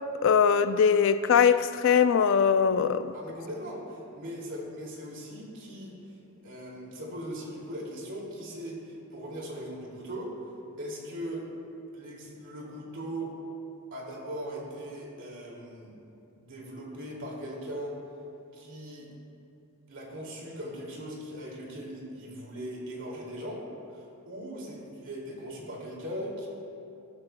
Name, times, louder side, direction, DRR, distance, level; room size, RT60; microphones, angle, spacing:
voice 1, 0.2-3.1, left 7 dB, 60° left, 0.4 m, -21 dB
voice 2, 3.1-6.2 6.4-10.3 10.8-11.5 11.9-13.3 13.9-15.9 16.4-18.0 18.5-19.1 19.9-23.6 23.9-26.5, equal, 60° right, 2.5 m, -39 dB
15.0 x 12.5 x 2.2 m
head